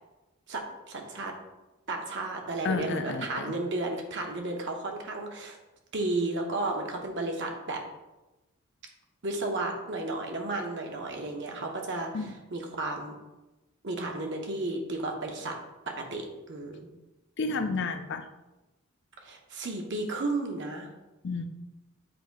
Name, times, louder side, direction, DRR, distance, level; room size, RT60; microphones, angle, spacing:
voice 1, 0.5-1.3 1.9-5.6 5.9-7.8 9.2-13.2 13.8-15.6 15.9-16.9 19.2-20.9, right 2 dB, 55° right, 2 dB, 0.9 m, -33 dB
voice 2, 2.6-3.6 12.1-12.3 17.4-18.3 21.2-21.5, left 4 dB, 55° left, 8 dB, 0.5 m, -31 dB
7.8 x 2.8 x 4.6 m, 1.0 s
head